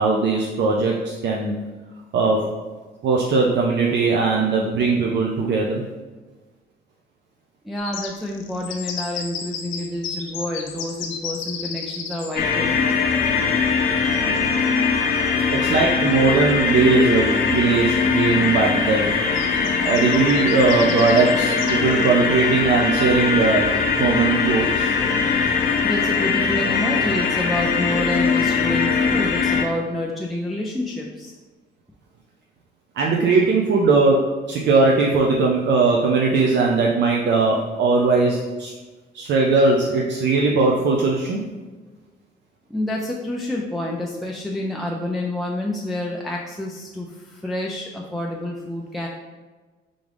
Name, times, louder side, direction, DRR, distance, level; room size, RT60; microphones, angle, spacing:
voice 1, 0.0-1.5 2.1-2.4 3.0-5.9 15.5-19.1 19.8-23.7 24.0-24.9 33.0-34.2 34.5-38.7 39.1-41.4, right 4 dB, 65° right, -1 dB, 0.5 m, -19 dB
voice 2, 7.6-12.8 25.8-31.3 42.7-49.1, left 1 dB, ahead, -2 dB, 0.4 m, -28 dB
sound 1, 7.8-12.4 14.8-14.9 15.3-15.4 16.7-16.8 17.1-17.6 18.1-18.2 19.3-22.1, left 6 dB, 90° left, 0.5 m, -33 dB
sound 2, 12.4-29.6, left 5 dB, 50° left, 0.6 m, -21 dB
3.7 x 3.6 x 3.3 m, 1.3 s
cardioid pair, 90°, 20 cm